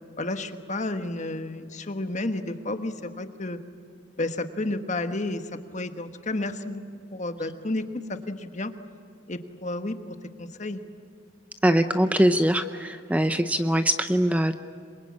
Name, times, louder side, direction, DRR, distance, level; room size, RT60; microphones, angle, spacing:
voice 1, 0.2-3.6 4.2-6.8 7.1-8.7 9.3-10.8, left 2 dB, 40° left, 8 dB, 1.3 m, -31 dB
voice 2, 11.6-14.6, right 1 dB, 5° right, 9 dB, 0.6 m, -22 dB
27.0 x 23.0 x 8.7 m, 2.4 s
head